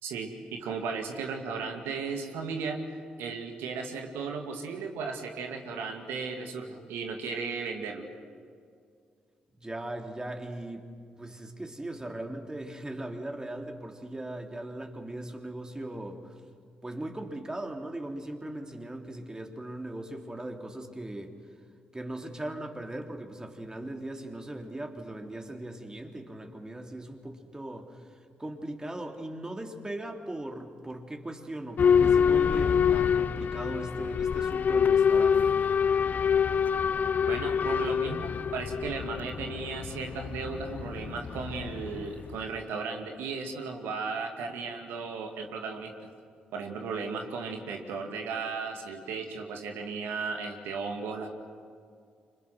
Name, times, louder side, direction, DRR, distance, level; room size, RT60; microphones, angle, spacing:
voice 1, 0.0-2.8 3.2-8.1 37.3-45.9 46.5-51.3, right 5 dB, 65° right, 4 dB, 2.3 m, -35 dB
voice 2, 9.6-10.9 11.2-16.3 16.8-21.3 21.9-28.1 28.4-35.6, right 1 dB, 20° right, 3 dB, 3.3 m, -39 dB
Boat Water vehicle / Alarm, 31.8-42.4, left 7 dB, 45° left, 0.6 m, -26 dB
29.0 x 26.0 x 6.1 m, 2.3 s
figure-of-eight pair, 40°, 4 cm